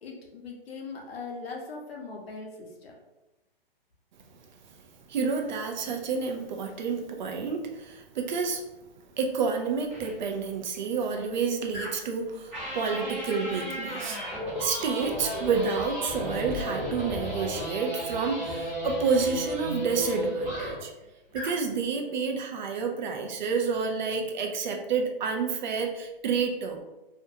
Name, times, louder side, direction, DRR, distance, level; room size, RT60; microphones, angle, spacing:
voice 1, 0.0-2.9, left 4 dB, 90° left, 0 dB, 0.7 m, -40 dB
voice 2, 5.1-8.6 9.2-14.2 14.6-20.9 21.3-26.8, right 5 dB, 50° right, 3 dB, 0.4 m, -29 dB
sound 1, 9.9-10.1 11.7-12.1 12.5-20.9 21.3-21.6, equal, 5° right, 0.8 m, -34 dB
2.5 x 2.2 x 2.7 m, 1.0 s
hypercardioid pair, 140°, 29 cm